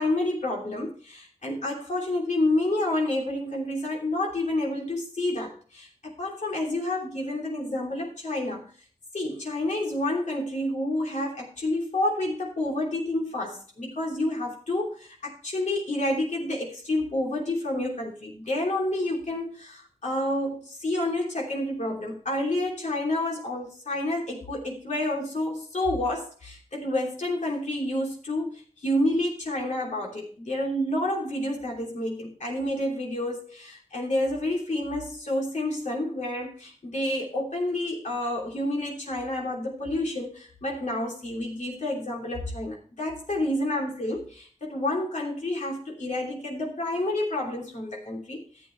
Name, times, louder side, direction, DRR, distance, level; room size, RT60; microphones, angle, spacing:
voice 1, 0.0-8.7 9.1-48.4, left 1 dB, 70° left, -2 dB, 3.1 m, -29 dB
13.5 x 8.1 x 3.2 m, 0.40 s
wide cardioid pair, 100°, 13 cm